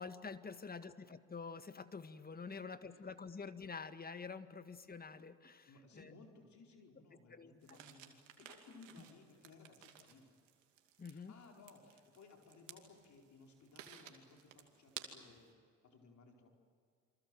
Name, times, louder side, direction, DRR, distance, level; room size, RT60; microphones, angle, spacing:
voice 1, 0.0-6.1 7.3-7.8 11.0-11.4, left 5 dB, 25° left, 11 dB, 1.9 m, -48 dB
voice 2, 2.5-3.1 5.7-10.4 11.0-15.6 15.8-16.5, left 3 dB, 50° left, 1 dB, 4.7 m, -61 dB
sound 1, 7.6-15.5, right 10 dB, 80° right, 2.6 m, -56 dB
28.0 x 25.0 x 7.8 m, 2.2 s
hypercardioid pair, 55°, 37 cm